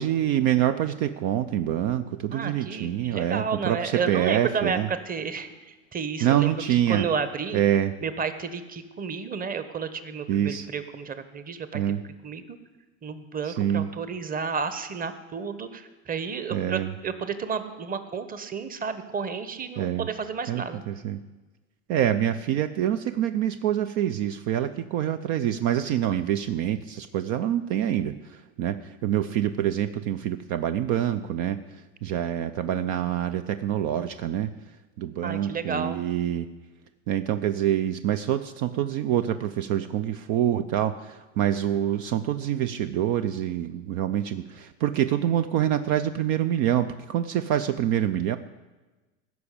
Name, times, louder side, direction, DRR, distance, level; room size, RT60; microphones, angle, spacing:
voice 1, 0.0-4.9 6.2-7.0 7.5-7.9 10.3-10.7 11.7-12.0 13.5-13.9 16.5-16.9 19.8-20.1 20.5-21.2 21.9-31.6 32.0-34.5 35.0-36.5 37.1-48.4, right 11 dB, 55° right, 10 dB, 0.7 m, -26 dB
voice 2, 2.3-7.6 8.0-11.9 12.2-12.6 13.0-20.8 35.2-36.0, right 5 dB, 20° right, 11 dB, 1.1 m, -32 dB
15.5 x 6.1 x 8.4 m, 1.2 s
hypercardioid pair, 105°, 39 cm